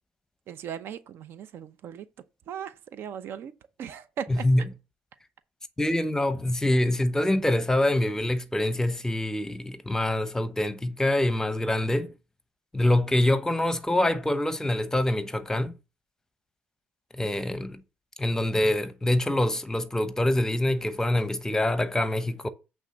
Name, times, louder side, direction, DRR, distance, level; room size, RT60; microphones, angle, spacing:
voice 1, 0.5-2.1 2.5-3.5 3.8-4.5, right 8 dB, 60° right, 0.7 m, -38 dB
voice 2, 4.3-4.6 5.8-12.1 12.7-15.7 17.1-17.8 18.2-22.5, left 1 dB, 10° left, 0.9 m, -25 dB
8.2 x 3.8 x 6.3 m
supercardioid pair, 80°, 4 cm